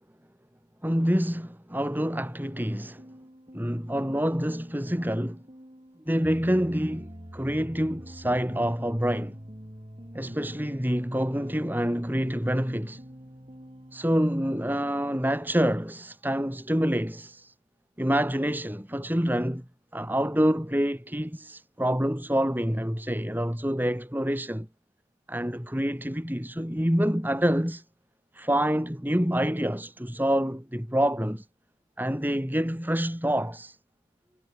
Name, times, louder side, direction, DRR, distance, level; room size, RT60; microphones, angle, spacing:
voice 1, 0.8-3.0 3.5-5.4 6.1-9.4 10.1-13.0 13.9-17.5 18.0-19.7 19.9-24.7 25.3-27.8 28.3-31.5 32.0-33.8, equal, 10° right, 3.6 m, -27 dB
sound 1, 2.5-14.1, equal, 25° right, 4.1 m, -45 dB
head